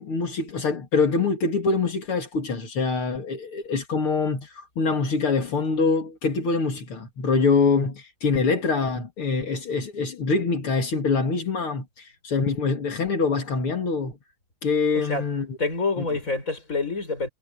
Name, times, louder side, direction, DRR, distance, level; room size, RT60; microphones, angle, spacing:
voice 1, 0.0-14.1 14.6-15.5 16.0-16.1, left 4 dB, 75° left, 3.4 m, -24 dB
voice 2, 14.9-15.3 15.6-17.3, left 3 dB, 35° left, 6.8 m, -27 dB
omnidirectional pair, 2.4 m